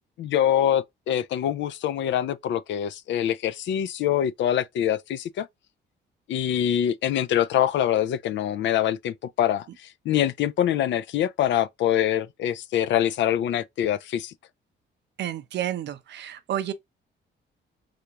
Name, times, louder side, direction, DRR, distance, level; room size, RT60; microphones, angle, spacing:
voice 1, 0.2-5.5 6.3-14.3, left 10 dB, 65° left, 0.4 m, -24 dB
voice 2, 15.2-16.7, right 11 dB, 60° right, 0.6 m, -30 dB
3.4 x 2.5 x 2.8 m
cardioid pair, 90°, 20 cm